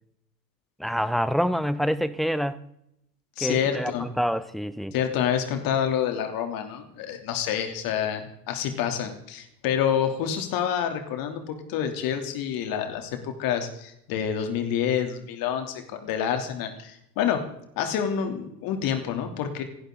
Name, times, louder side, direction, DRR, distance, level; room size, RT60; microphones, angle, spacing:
voice 1, 0.8-2.6 3.4-4.9, equal, ahead, 15 dB, 0.7 m, -26 dB
voice 2, 3.4-4.1 4.9-17.5 17.8-19.6, left 8 dB, 45° left, 5 dB, 3.3 m, -28 dB
28.0 x 11.0 x 4.0 m, 0.77 s
figure-of-eight pair, 85°, 49 cm